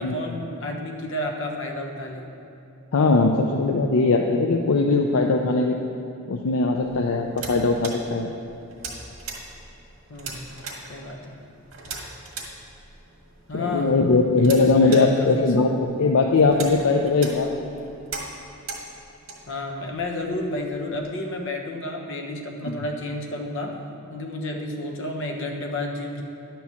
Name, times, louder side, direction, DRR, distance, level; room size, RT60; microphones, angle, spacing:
voice 1, 0.0-2.3 10.1-10.5 10.9-11.4 13.5-13.9 14.3-15.5 19.5-23.8 24.1-26.2, left 1 dB, 65° left, 2 dB, 1.1 m, -31 dB
voice 2, 2.9-5.8 6.3-8.3 13.5-15.7 16.0-17.5 22.6-22.8, left 3 dB, 85° left, 2 dB, 0.5 m, -20 dB
sound 1, 6.8-21.1, right 4 dB, 80° right, 1.6 m, -40 dB
10.5 x 4.6 x 7.0 m, 2.8 s
head